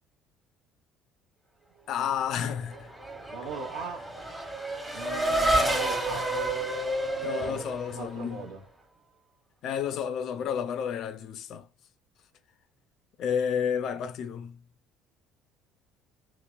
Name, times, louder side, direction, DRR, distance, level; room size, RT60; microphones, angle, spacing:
voice 1, 1.9-2.9 4.9-5.1 5.5-5.7 7.2-8.5 9.6-11.7 13.2-14.6, left 8 dB, 50° left, 0.5 m, -31 dB
Race car auto racing / Accelerating revving vroom, 2.5-8.5, right 1 dB, 15° right, 1.2 m, -30 dB
voice 2, 3.3-4.0 4.9-6.2 7.4-8.6, right 4 dB, 70° right, 0.8 m, -39 dB
3.1 x 2.9 x 2.4 m
figure-of-eight pair, 55°, 0 cm